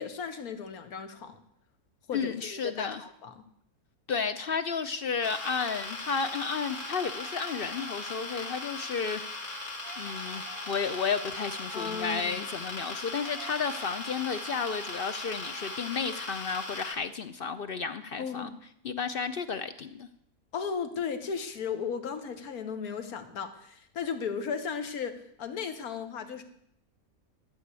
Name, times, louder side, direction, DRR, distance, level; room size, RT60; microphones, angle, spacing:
voice 1, 0.0-1.4 2.1-3.4 11.7-12.4 18.2-18.5 20.5-26.4, left 6 dB, 75° left, 9 dB, 1.6 m, -35 dB
voice 2, 2.1-3.0 4.1-9.2 10.0-18.5 18.8-20.1, left 5 dB, 60° left, 11 dB, 0.6 m, -32 dB
sound 1, 5.2-16.9, left 3 dB, 35° left, 2.0 m, -39 dB
sound 2, 6.3-9.2 9.8-12.6 13.1-16.1, right 9 dB, 60° right, 0.8 m, -49 dB
12.0 x 6.4 x 8.2 m, 0.72 s
omnidirectional pair, 1.6 m